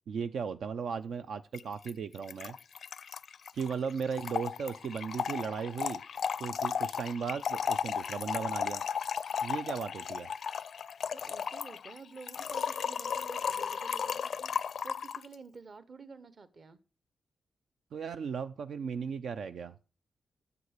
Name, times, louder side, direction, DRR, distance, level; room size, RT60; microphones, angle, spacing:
voice 1, 0.1-2.6 3.5-6.0 6.4-8.8 9.4-10.3 17.9-19.7, right 6 dB, 75° right, 10 dB, 0.5 m, -36 dB
Trickle dribble / Fill (with liquid), 1.5-1.6 1.9-2.0 2.2-15.3, left 7 dB, 65° left, 0.4 m, -35 dB
voice 2, 11.1-16.8, right 4 dB, 40° right, 15 dB, 0.9 m, -50 dB
9.8 x 8.0 x 6.5 m, 0.36 s
wide cardioid pair, 160°, 0 cm